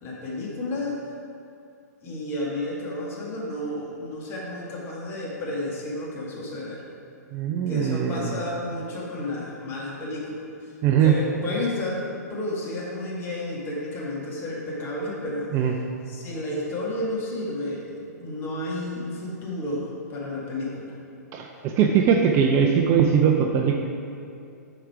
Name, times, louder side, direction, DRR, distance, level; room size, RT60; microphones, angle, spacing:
voice 1, 0.0-1.0 2.0-6.8 7.7-10.7 11.0-15.5 16.1-20.9, left 1 dB, 25° left, -4 dB, 1.8 m, -31 dB
voice 2, 7.3-8.4 10.8-11.2 15.5-15.7 21.3-23.8, right 7 dB, 30° right, 2 dB, 0.5 m, -21 dB
7.8 x 5.0 x 4.7 m, 2.5 s
hypercardioid pair, 125°, 9 cm